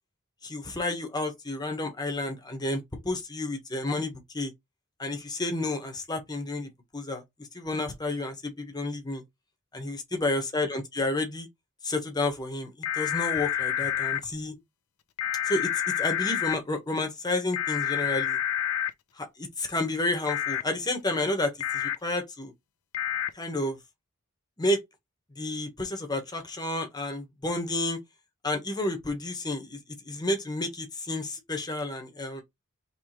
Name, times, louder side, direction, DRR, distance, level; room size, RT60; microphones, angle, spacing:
voice 1, 0.4-4.5 5.0-7.2 7.5-9.2 9.7-11.5 11.8-14.6 15.4-15.7 16.0-18.4 19.2-22.5 23.3-23.8 24.6-24.8 25.4-28.0 28.4-29.8 30.0-32.4, left 2 dB, 20° left, 1.1 m, -31 dB
sound 1, 12.8-14.2 15.2-16.6 17.5-18.9 20.3-20.6 21.6-22.0 22.9-23.3, left 10 dB, 80° left, 0.6 m, -28 dB
4.8 x 3.3 x 3.0 m
head